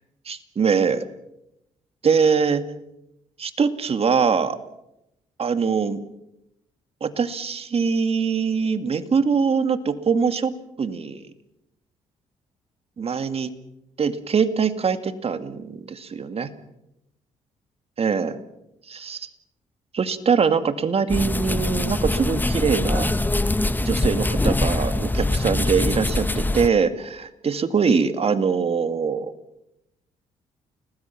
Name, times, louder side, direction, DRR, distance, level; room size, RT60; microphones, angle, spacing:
voice 1, 0.3-1.0 2.0-2.6 3.4-4.6 5.4-6.0 7.0-10.5 10.8-11.3 13.0-13.5 14.0-16.5 18.0-18.4 18.9-19.3 19.9-23.1 23.8-29.3, right 6 dB, 45° right, 10 dB, 2.3 m, -23 dB
sound 1, 21.1-26.7, left 2 dB, 15° left, 1.3 m, -23 dB
29.5 x 19.5 x 6.0 m, 0.84 s
supercardioid pair, 60°, 14 cm